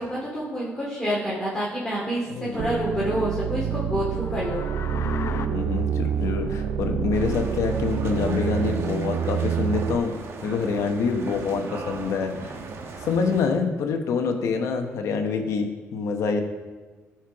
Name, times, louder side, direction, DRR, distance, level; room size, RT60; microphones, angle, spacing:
voice 1, 0.0-4.6, equal, 10° left, -7 dB, 2.3 m, -28 dB
voice 2, 2.3-2.8 3.7-3.8 5.4-10.2 10.4-12.6 13.0-16.4, left 5 dB, 75° left, 5 dB, 1.0 m, -26 dB
sound 1, 2.6-10.0, right 9 dB, 85° right, 0.4 m, -27 dB
sound 2, 4.1-5.5, left 6 dB, 60° left, 0.6 m, -34 dB
sound 3, 7.1-13.5, right 4 dB, 55° right, 1.1 m, -37 dB
13.0 x 4.5 x 4.8 m, 1.3 s
cardioid pair, 95°, 5 cm